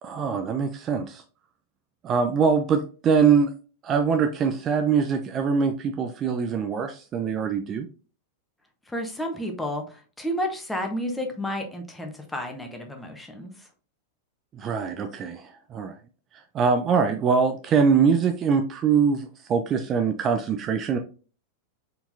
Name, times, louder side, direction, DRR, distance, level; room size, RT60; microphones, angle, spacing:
voice 1, 0.0-1.2 2.0-3.5 3.8-7.9 14.6-15.9 16.5-21.0, right 6 dB, 30° right, 6 dB, 0.5 m, -23 dB
voice 2, 8.9-13.7, equal, 5° left, 3 dB, 1.1 m, -31 dB
4.3 x 3.9 x 2.7 m, 0.37 s
figure-of-eight pair, 90°, 0 cm